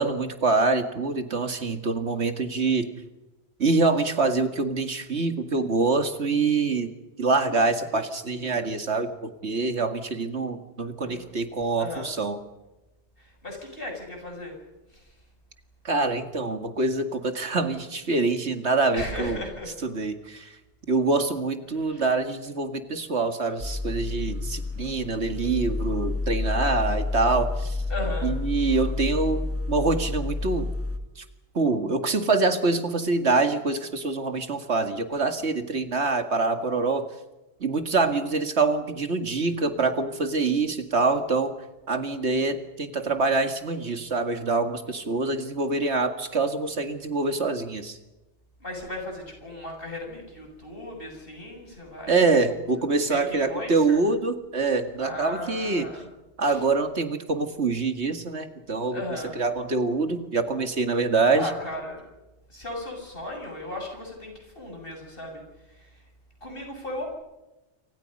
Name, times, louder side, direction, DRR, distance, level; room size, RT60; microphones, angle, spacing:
voice 1, 0.0-2.9 3.6-6.9 7.2-12.4 15.8-19.4 19.8-20.5 20.9-27.8 28.2-30.7 31.2-31.3 31.5-37.1 37.6-41.5 41.9-48.0 52.1-55.9 56.4-59.0 59.4-61.5, right 3 dB, 75° right, 7 dB, 2.4 m, -25 dB
voice 2, 11.8-12.1 13.2-14.6 14.9-15.1 18.9-19.7 21.8-22.0 27.9-28.4 35.1-35.2 48.6-52.6 53.1-54.0 55.0-56.1 56.4-56.6 58.9-59.4 61.3-62.1 62.5-66.0 66.4-67.2, left 1 dB, 55° left, 2 dB, 7.7 m, -36 dB
sound 1, 23.6-31.0, left 2 dB, 10° left, 2.3 m, -29 dB
28.0 x 26.0 x 5.5 m, 1.0 s
omnidirectional pair, 1.2 m